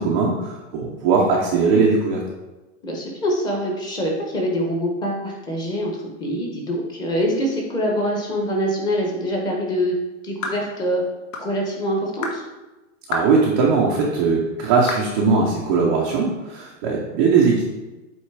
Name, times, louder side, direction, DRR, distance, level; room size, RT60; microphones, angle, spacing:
voice 1, 0.0-2.2 13.1-17.6, right 4 dB, 15° right, -3 dB, 0.4 m, -19 dB
voice 2, 2.8-9.9 10.2-11.0 11.4-12.4, equal, 10° left, 0 dB, 0.8 m, -24 dB
sound 1, 10.4-10.7 11.3-11.5 12.2-12.4 13.1-13.4 14.0-14.1 14.9-15.1, left 3 dB, 85° left, 1.4 m, -28 dB
8.1 x 3.2 x 4.5 m, 1.1 s
supercardioid pair, 160°, 38 cm